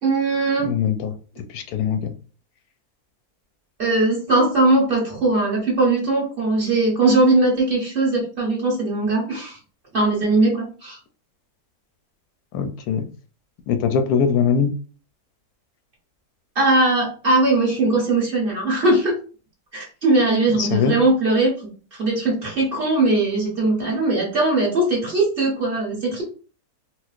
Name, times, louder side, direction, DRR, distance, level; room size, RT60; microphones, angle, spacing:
voice 1, 0.0-0.7 3.8-9.6 9.9-11.0 16.5-19.1 19.7-21.5 22.0-26.2, right 2 dB, 40° right, -3 dB, 1.3 m, -20 dB
voice 2, 0.6-2.1 12.5-13.0 13.7-14.7 20.5-21.0, left 7 dB, 85° left, 6 dB, 1.1 m, -22 dB
4.3 x 2.0 x 2.4 m, 0.38 s
omnidirectional pair, 1.6 m